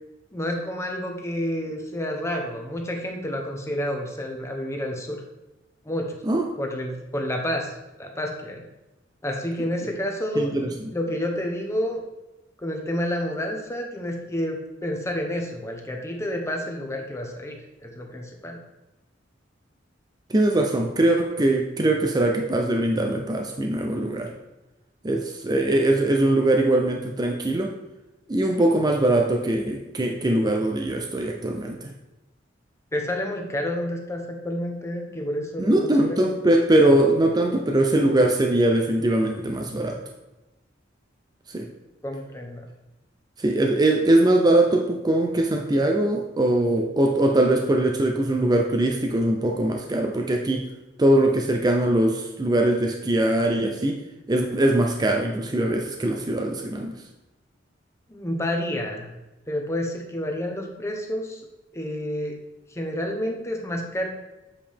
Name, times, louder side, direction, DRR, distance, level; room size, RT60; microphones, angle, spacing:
voice 1, 0.3-5.2 5.8-6.2 6.6-8.6 9.2-12.0 12.6-18.6 32.9-36.2 42.0-42.6 58.1-59.1 59.5-61.4 61.7-62.4 62.7-64.1, equal, 15° left, 2 dB, 0.9 m, -29 dB
voice 2, 10.4-10.7 20.3-24.3 25.0-27.7 28.3-31.9 35.6-40.0 41.5-41.7 43.4-50.6 51.0-54.0 54.3-57.0, right 1 dB, 20° right, 2 dB, 0.5 m, -21 dB
7.4 x 4.8 x 3.5 m, 0.98 s
head